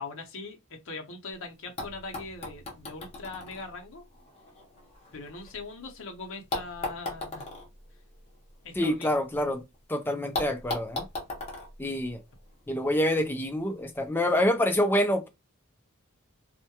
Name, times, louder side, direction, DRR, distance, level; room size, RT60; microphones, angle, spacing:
voice 1, 0.0-4.0 5.1-7.5 8.6-9.2, left 3 dB, 60° left, 0.6 m, -41 dB
sound 1, 1.8-5.9 6.5-9.5 9.7-9.8 10.3-12.7 13.7-13.8, left 2 dB, 30° left, 0.7 m, -38 dB
voice 2, 8.8-9.6 9.9-11.1 11.8-12.2 12.7-15.3, left 1 dB, 10° left, 0.3 m, -26 dB
2.2 x 2.1 x 2.8 m
head